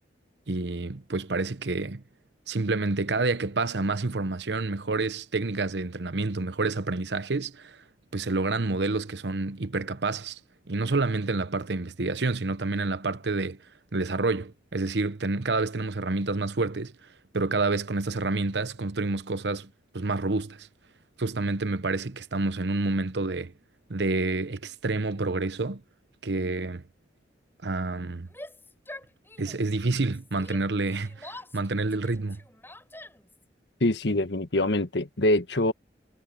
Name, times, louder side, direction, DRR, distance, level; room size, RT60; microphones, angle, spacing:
voice 1, 0.5-2.0 2.5-7.8 8.1-10.4 10.7-13.6 13.9-16.9 17.3-20.7 21.2-23.5 23.9-25.8 26.2-26.8 27.6-28.3 29.4-32.4, right 3 dB, 80° right, 1.0 m, -28 dB
Yell, 28.2-29.7 30.0-33.4, left 2 dB, 15° left, 7.0 m, -46 dB
voice 2, 33.8-35.7, left 1 dB, 80° left, 1.5 m, -24 dB
head